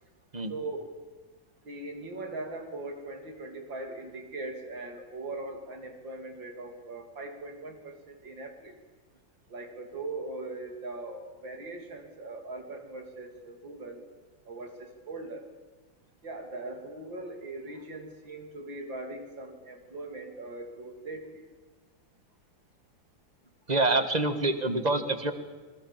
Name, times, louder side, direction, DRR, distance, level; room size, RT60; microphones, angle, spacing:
voice 1, 0.5-0.9 1.7-8.8 9.5-14.0 14.5-15.5 16.2-21.4, right 2 dB, 70° right, 4 dB, 3.7 m, -40 dB
voice 2, 23.7-25.3, right 2 dB, 20° right, 9 dB, 1.7 m, -26 dB
27.0 x 22.0 x 7.5 m, 1.4 s
omnidirectional pair, 2.1 m